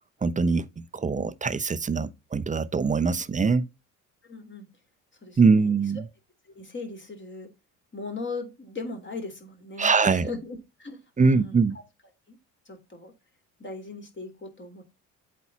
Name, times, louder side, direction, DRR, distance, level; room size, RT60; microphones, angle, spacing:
voice 1, 0.2-3.7 5.4-6.1 9.8-10.3 11.2-11.7, right 4 dB, 20° right, 0.7 m, -23 dB
voice 2, 4.2-4.7 5.2-5.8 6.4-7.5 7.9-11.6 12.3-12.4 12.6-13.1 13.6-14.8, left 3 dB, 30° left, 3.3 m, -38 dB
8.0 x 4.3 x 5.9 m
hypercardioid pair, 60°, 40 cm